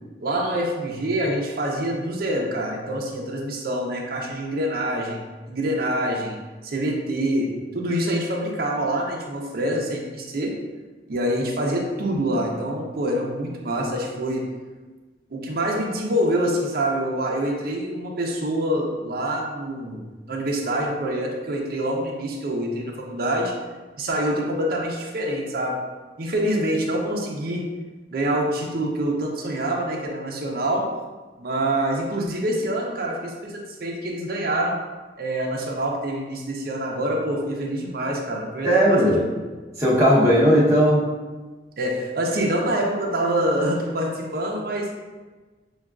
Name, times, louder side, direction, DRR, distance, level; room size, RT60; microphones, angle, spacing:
voice 1, 0.2-5.2 5.5-10.6 11.1-14.5 15.3-23.6 24.0-25.8 26.2-27.7 28.1-30.9 31.4-34.8 35.2-39.2 41.8-44.9, right 1 dB, 55° right, 0 dB, 0.6 m, -26 dB
voice 2, 38.6-39.2 39.8-41.0, equal, 15° right, -8 dB, 0.9 m, -17 dB
6.1 x 2.3 x 2.4 m, 1.3 s
head